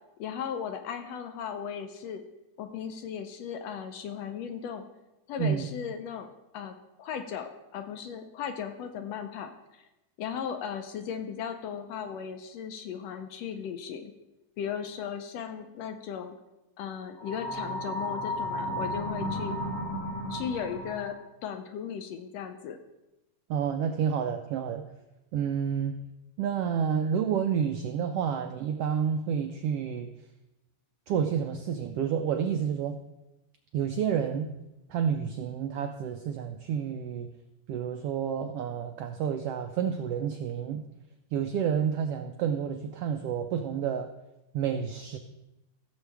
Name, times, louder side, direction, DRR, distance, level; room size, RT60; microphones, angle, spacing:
voice 1, 0.2-2.2 2.6-4.8 5.3-9.8 10.2-14.1 14.6-16.3 16.8-19.6 20.3-22.8, left 7 dB, 75° left, 7 dB, 1.7 m, -36 dB
sound 1, 17.2-21.2, left 1 dB, 50° left, 2.2 m, -33 dB
voice 2, 23.5-24.8 25.3-26.0 26.4-30.1 31.1-33.0 33.7-34.5 34.9-37.3 37.7-40.8 41.3-44.1 44.5-45.2, right 8 dB, 85° right, 6 dB, 1.3 m, -29 dB
15.5 x 7.2 x 3.4 m, 0.96 s
omnidirectional pair, 3.3 m